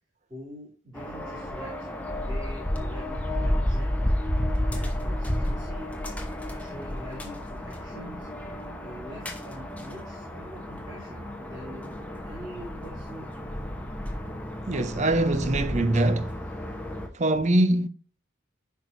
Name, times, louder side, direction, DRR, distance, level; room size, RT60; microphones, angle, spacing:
voice 1, 0.3-4.1 4.6-5.9 6.6-8.3 8.8-11.9 12.2-13.3, equal, 20° right, 2.8 m, -44 dB
sound 1, 0.9-17.1, left 1 dB, 5° left, 0.9 m, -32 dB
voice 2, 14.7-16.4 17.1-17.9, right 1 dB, 35° right, 0.6 m, -23 dB
10.5 x 4.6 x 2.6 m
head